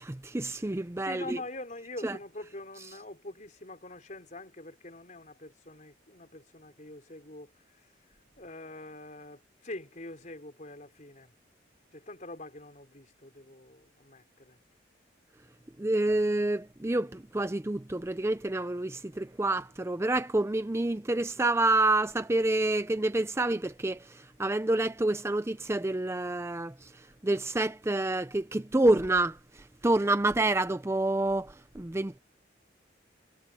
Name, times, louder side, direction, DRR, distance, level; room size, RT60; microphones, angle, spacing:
voice 1, 0.0-1.4 2.0-2.2 15.8-32.2, right 2 dB, 15° right, 0.5 m, -28 dB
voice 2, 1.0-7.5 8.4-11.3 11.9-14.6, left 2 dB, 40° left, 4.5 m, -44 dB
head